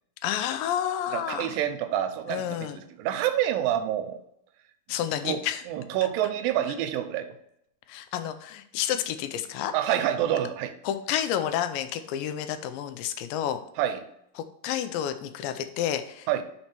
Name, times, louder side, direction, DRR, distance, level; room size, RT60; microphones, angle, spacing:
voice 1, 0.2-1.5 2.3-2.8 4.9-5.6 7.9-9.7 10.8-13.6 14.6-16.4, left 10 dB, 85° left, 10 dB, 2.3 m, -30 dB
voice 2, 1.1-4.2 5.2-5.4 5.7-7.4 9.7-10.7 13.8-14.0 16.3-16.4, right 11 dB, 90° right, 8 dB, 2.3 m, -27 dB
5.3 x 4.4 x 4.4 m, 0.75 s
omnidirectional pair, 4.0 m